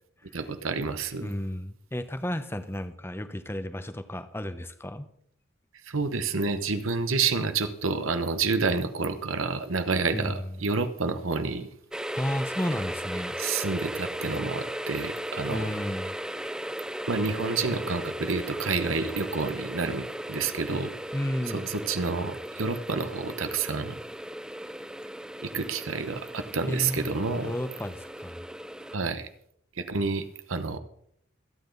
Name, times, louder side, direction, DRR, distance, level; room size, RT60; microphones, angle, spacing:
voice 1, 0.3-1.3 5.8-11.7 13.4-15.7 17.1-20.9 21.5-24.0 25.4-27.6 28.9-29.3 29.8-30.8, right 4 dB, 85° right, 9 dB, 1.1 m, -29 dB
voice 2, 1.2-5.1 10.1-10.6 12.1-13.4 15.5-16.2 21.1-21.7 26.7-28.4, left 1 dB, 10° left, 10 dB, 0.9 m, -33 dB
sound 1, 11.9-29.0, right 1 dB, 5° right, 0.4 m, -36 dB
24.5 x 9.2 x 4.0 m, 0.67 s
head